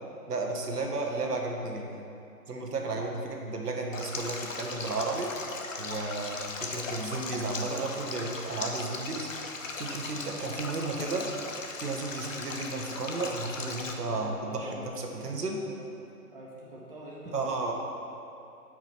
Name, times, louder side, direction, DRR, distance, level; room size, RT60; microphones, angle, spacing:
voice 1, 0.3-2.0 2.5-5.3 5.8-9.5 9.8-11.3 11.8-15.6 17.3-17.7, right 3 dB, 75° right, 1 dB, 1.4 m, -33 dB
voice 2, 2.5-2.8 14.2-15.2 15.4-15.8 16.3-17.7, right 1 dB, 35° right, -6 dB, 1.7 m, -46 dB
Stream, 3.9-13.9, left 3 dB, 55° left, 0.8 m, -38 dB
9.0 x 5.0 x 4.4 m, 2.7 s
hypercardioid pair, 170°, 47 cm